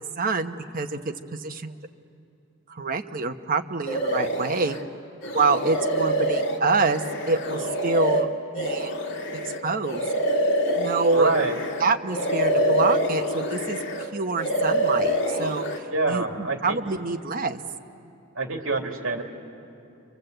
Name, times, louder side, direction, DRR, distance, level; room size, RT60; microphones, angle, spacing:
voice 1, 0.2-1.0 1.3-1.7 2.7-4.8 5.3-7.0 7.3-8.3 8.5-8.9 9.6-10.1 10.7-11.3 11.8-13.8 14.1-17.6, right 3 dB, 40° right, 6 dB, 1.0 m, -26 dB
sound 1, 3.9-4.8 5.2-11.8 12.1-14.1 14.4-15.8, equal, 60° left, 2.0 m, -26 dB
voice 2, 11.1-11.6 15.9-16.8 18.4-19.2, right 3 dB, 70° right, 3 dB, 2.5 m, -26 dB
29.5 x 25.0 x 8.0 m, 2.7 s
head